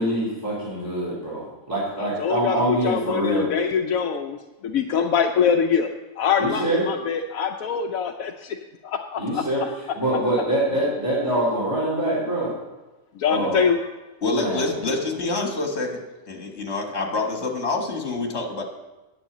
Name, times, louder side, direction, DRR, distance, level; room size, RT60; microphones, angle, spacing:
voice 1, 0.0-3.5 6.4-6.9 9.2-9.6 9.9-12.5 13.3-13.6 14.2-14.8, right 1 dB, 15° right, -8 dB, 3.4 m, -24 dB
voice 2, 2.0-4.4 4.6-5.9 6.2-8.6 8.8-10.0 13.2-13.8, left 7 dB, 80° left, 3 dB, 1.1 m, -24 dB
voice 3, 14.2-18.6, left 3 dB, 50° left, 2 dB, 1.9 m, -27 dB
10.0 x 6.4 x 8.8 m, 1.1 s
omnidirectional pair, 1.4 m